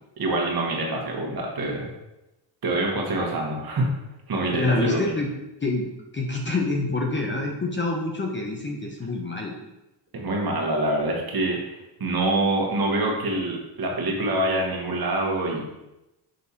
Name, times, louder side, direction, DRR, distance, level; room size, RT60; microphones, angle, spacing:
voice 1, 0.2-1.9 2.6-3.9 4.3-5.1 10.1-15.6, right 2 dB, 45° right, 0 dB, 1.6 m, -25 dB
voice 2, 4.5-5.3 5.6-9.5, left 2 dB, 20° left, 0 dB, 0.9 m, -26 dB
6.5 x 3.4 x 4.3 m, 0.95 s
cardioid pair, 90°, 50 cm